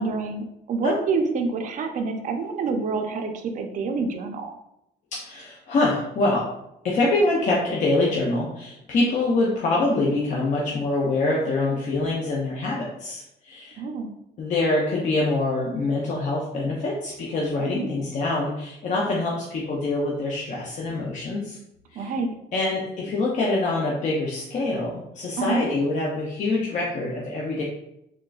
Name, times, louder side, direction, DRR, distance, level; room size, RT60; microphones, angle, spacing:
voice 1, 0.0-4.5 13.8-14.1 17.7-17.9 22.0-22.3 25.4-25.7, right 4 dB, 50° right, 5 dB, 0.5 m, -27 dB
voice 2, 5.1-6.5 6.8-13.8 14.4-21.6 21.9-22.1 22.5-27.6, left 2 dB, 45° left, -4 dB, 0.6 m, -25 dB
3.7 x 2.1 x 2.3 m, 0.83 s
cardioid pair, 110°, 17 cm